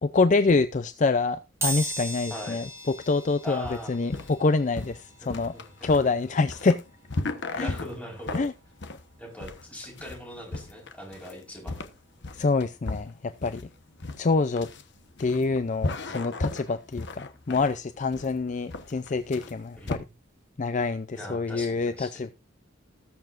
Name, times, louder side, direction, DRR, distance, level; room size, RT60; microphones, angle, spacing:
voice 1, 0.0-2.7 3.1-5.5 5.8-6.8 7.5-7.7 8.3-8.5 12.3-13.6 14.2-14.7 15.2-20.0 20.6-22.3, left 3 dB, 40° left, 0.4 m, -26 dB
sound 1, 1.6-12.3 12.7-12.8 14.0-14.1 14.4-16.5 16.8-19.5 19.8-20.0 20.3-20.4, right 2 dB, 15° right, 2.4 m, -41 dB
voice 2, 2.3-2.6 3.4-3.9 5.2-6.2 7.5-8.5 9.2-11.8 16.0-16.2 19.8-20.1 21.1-22.3, equal, 5° left, 4.5 m, -41 dB
sound 2, 3.6-20.0, left 2 dB, 60° left, 1.1 m, -36 dB
19.5 x 7.0 x 2.5 m
head